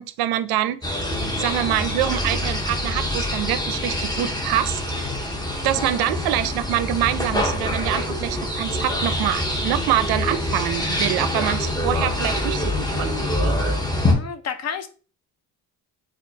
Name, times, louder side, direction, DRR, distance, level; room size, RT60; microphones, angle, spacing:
voice 1, 0.0-1.1 1.4-4.8 5.6-13.6, right 12 dB, 70° right, 0.5 m, -25 dB
sound 1, 0.8-14.1, left 1 dB, 10° left, 0.8 m, -25 dB
voice 2, 14.1-14.9, left 7 dB, 40° left, 0.5 m, -31 dB
4.3 x 2.4 x 2.8 m
cardioid pair, 105°, 39 cm